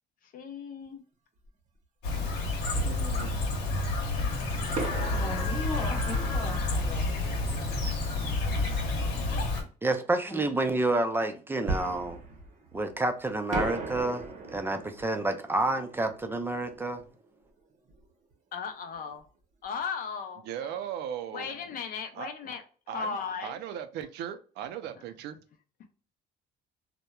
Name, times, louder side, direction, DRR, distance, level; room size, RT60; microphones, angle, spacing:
voice 1, 0.2-1.0 9.3-9.7 18.5-19.3 19.6-20.8 21.3-23.6, left 6 dB, 55° left, 0.5 m, -37 dB
Fireworks, 1.4-1.5 2.7-3.9 4.7-8.2 11.7-13.1 13.5-18.1 18.3-18.4 18.9-19.1, right 3 dB, 45° right, 0.7 m, -39 dB
Chirp tweet, 2.0-9.6, left 2 dB, 80° left, 0.9 m, -29 dB
voice 2, 2.7-3.4 20.5-21.5 22.2-22.3 22.9-25.4, right 9 dB, 80° right, 0.4 m, -38 dB
voice 3, 4.9-8.5 10.3-10.5, left 2 dB, 35° left, 0.8 m, -39 dB
voice 4, 9.8-12.2 12.7-14.2 14.5-17.0, right 2 dB, 15° right, 0.4 m, -29 dB
2.9 x 2.1 x 2.2 m
cardioid pair, 110°, 17 cm